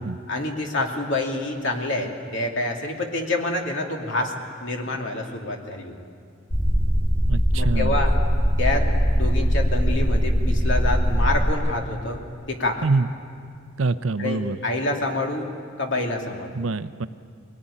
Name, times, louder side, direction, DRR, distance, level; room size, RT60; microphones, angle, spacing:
voice 1, 0.3-4.3 4.6-5.9 7.5-8.2 8.6-12.9 14.2-15.5 15.8-16.5, left 2 dB, 65° left, 1 dB, 2.7 m, -27 dB
sound 1, 6.5-11.5, equal, 25° left, 2.2 m, -21 dB
voice 2, 7.3-7.9 12.8-13.1 13.8-14.6 16.5-17.1, right 3 dB, 75° right, 12 dB, 0.7 m, -25 dB
22.0 x 18.5 x 10.0 m, 2.3 s
head